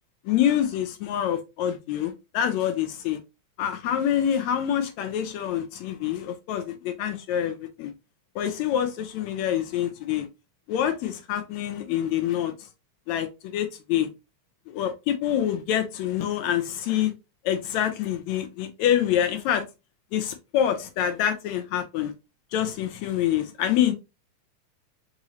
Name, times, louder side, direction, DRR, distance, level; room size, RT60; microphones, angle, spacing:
voice 1, 0.2-3.2 3.6-7.9 8.3-10.3 10.7-12.7 13.1-14.1 14.7-17.1 17.4-19.6 20.1-22.1 22.5-23.9, left 10 dB, 80° left, 1.8 m, -26 dB
4.7 x 2.9 x 2.9 m
omnidirectional pair, 3.3 m